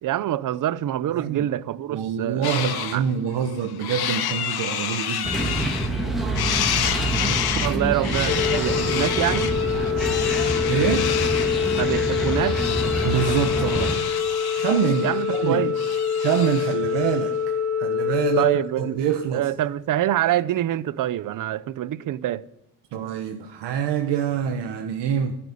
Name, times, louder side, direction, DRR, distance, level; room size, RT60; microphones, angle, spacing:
voice 1, 0.0-2.5 2.9-3.0 7.0-9.6 11.8-12.6 15.0-15.7 18.4-19.0 19.3-22.4, right 13 dB, 50° right, 0.6 m, -25 dB
voice 2, 1.1-1.5 1.9-5.5 8.2-8.7 10.7-11.1 12.3-12.4 13.0-15.7 16.2-18.5 18.8-19.5 22.9-25.4, right 8 dB, 90° right, 1.3 m, -26 dB
sound 1, 2.4-3.0 3.4-6.1 6.3-16.8, left 10 dB, 65° left, 1.4 m, -29 dB
sound 2, 5.2-14.0, right 1 dB, ahead, 2.4 m, -27 dB
Organ, 8.3-19.3, left 7 dB, 35° left, 3.4 m, -25 dB
15.5 x 8.9 x 9.9 m
cardioid pair, 160°, 41 cm